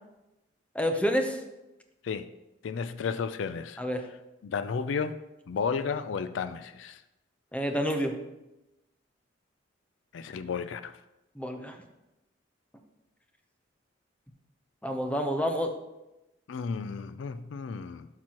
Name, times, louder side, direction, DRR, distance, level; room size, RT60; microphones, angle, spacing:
voice 1, 0.7-1.4 3.8-4.1 7.5-8.2 11.4-11.8 14.8-15.8, equal, 5° left, 0.7 m, -28 dB
voice 2, 2.6-3.8 4.4-5.2 5.5-7.0 10.1-10.9 16.5-18.1, left 5 dB, 75° left, 0.4 m, -33 dB
12.0 x 6.0 x 3.0 m
head